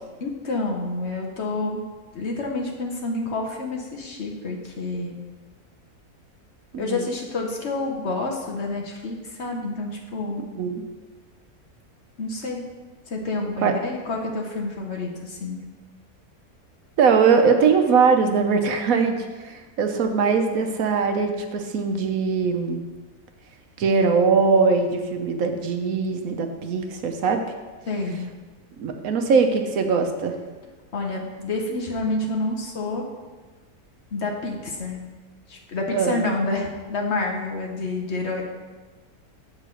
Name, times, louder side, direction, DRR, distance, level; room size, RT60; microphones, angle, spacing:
voice 1, 0.2-1.8 2.1-5.2 6.8-10.5 12.2-12.6 13.1-15.6 27.9-28.3 30.9-33.0 34.1-35.0 35.5-38.4, left 2 dB, 50° left, 1 dB, 1.1 m, -28 dB
voice 2, 6.7-7.1 10.6-10.8 13.6-13.7 17.0-22.8 23.8-27.4 28.8-30.4 35.9-36.2, right 5 dB, 70° right, 5 dB, 1.1 m, -21 dB
7.8 x 3.8 x 6.3 m, 1.3 s
omnidirectional pair, 1.6 m